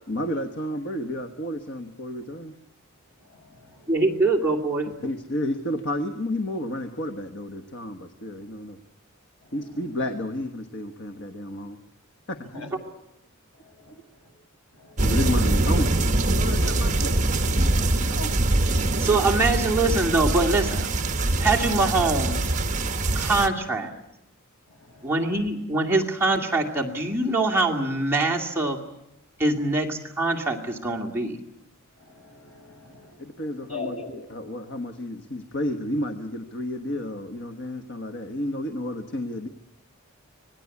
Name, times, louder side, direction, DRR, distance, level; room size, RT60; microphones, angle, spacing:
voice 1, 0.1-2.6 5.0-8.8 9.5-11.8 12.3-12.5 15.0-15.9 16.4-17.2 17.8-18.4 33.2-34.0 34.3-39.5, left 1 dB, 55° left, 7 dB, 1.3 m, -31 dB
voice 2, 3.2-3.9 9.4-9.5 12.5-12.7 13.5-14.3 14.7-15.0 23.1-23.3 24.7-25.3 32.0-33.2 33.7-34.1, left 4 dB, 85° left, 2 dB, 6.5 m, -42 dB
voice 3, 3.9-4.9 19.0-20.9 21.4-22.5 23.1-23.9 25.0-28.8 29.4-31.4, right 2 dB, 10° right, -2 dB, 2.3 m, -23 dB
sound 1, 15.0-23.5, right 2 dB, 35° right, 1.4 m, -23 dB
25.5 x 19.5 x 8.4 m, 0.86 s
head